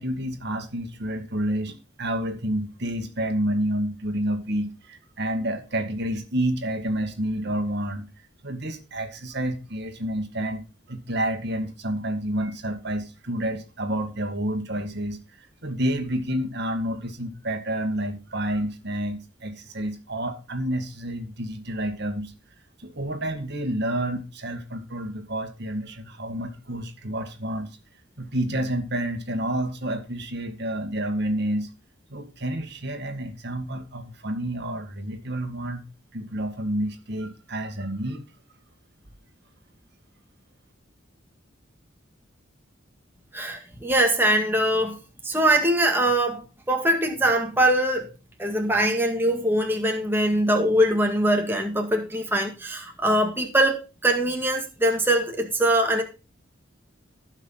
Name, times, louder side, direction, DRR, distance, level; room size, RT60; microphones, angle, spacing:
voice 1, 0.0-8.1 8.4-22.3 22.8-27.8 28.2-31.7 32.1-35.8 36.1-38.2, right 1 dB, 60° right, 2.0 m, -29 dB
voice 2, 43.3-45.0 45.2-46.4 46.7-48.1 48.4-56.0, right 1 dB, 10° right, 2.0 m, -22 dB
16.0 x 6.0 x 4.0 m
head